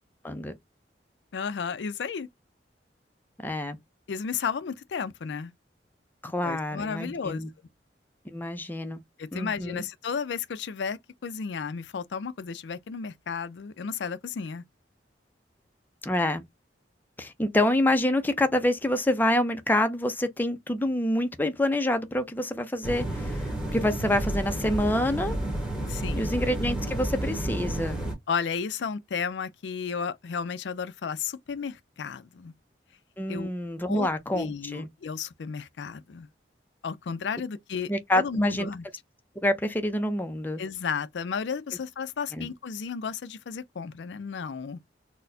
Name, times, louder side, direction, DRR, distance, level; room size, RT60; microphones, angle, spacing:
voice 1, 1.3-2.3 4.1-5.5 6.4-7.4 9.2-14.6 25.9-26.3 28.3-32.5 33.3-33.5 33.9-36.3 36.8-38.8 40.6-44.8, left 6 dB, 75° left, 0.4 m, -33 dB
voice 2, 3.4-3.8 6.2-7.5 8.3-9.0 9.3-9.8 16.0-16.4 17.2-25.4 26.2-28.0 33.2-34.9 37.9-38.7 39.4-40.6 42.3-42.5, left 1 dB, 10° left, 0.5 m, -27 dB
sound 1, 22.8-28.1, right 1 dB, 5° right, 1.3 m, -31 dB
4.1 x 2.1 x 2.6 m
head